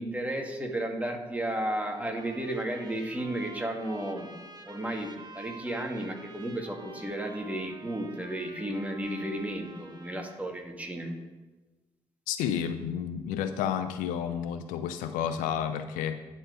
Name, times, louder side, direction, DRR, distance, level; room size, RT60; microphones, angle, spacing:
voice 1, 0.0-4.3 4.6-11.2, right 1 dB, 10° right, 2 dB, 2.0 m, -33 dB
Trumpet, 1.6-10.5, right 2 dB, 30° right, 1.4 m, -49 dB
voice 2, 12.3-16.2, left 8 dB, 75° left, 11 dB, 0.5 m, -31 dB
10.0 x 4.5 x 5.0 m, 1.2 s
hypercardioid pair, 40°, 14 cm